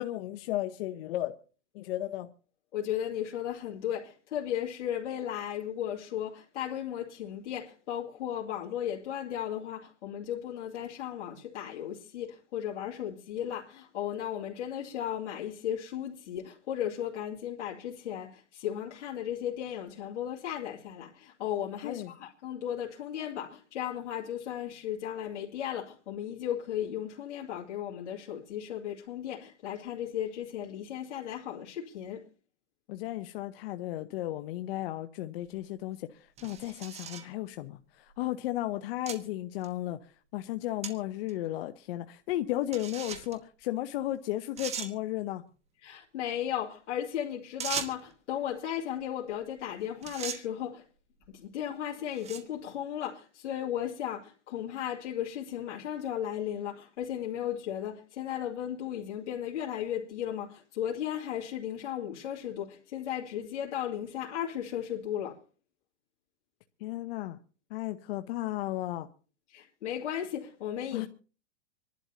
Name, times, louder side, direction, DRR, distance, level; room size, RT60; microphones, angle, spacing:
voice 1, 0.0-1.4 1.7-2.3 21.8-22.1 32.9-40.0 40.3-45.4 66.8-67.4 67.7-69.1 70.9-71.1, left 15 dB, 55° left, 0.8 m, -34 dB
voice 2, 2.7-32.2 45.8-50.8 51.3-65.4 69.5-71.1, left 10 dB, 80° left, 2.5 m, -35 dB
sound 1, 35.4-35.5 36.4-37.3 38.1-38.2 39.1-39.2 39.6-39.7 40.8-40.9 41.3-41.4 42.7-43.4 44.1-44.2 44.6-44.9 47.6-48.1 49.5-49.7 50.0-50.4 51.2-51.5 52.1-52.5, right 7 dB, 20° right, 1.2 m, -38 dB
26.0 x 11.5 x 2.8 m
supercardioid pair, 150°, 35 cm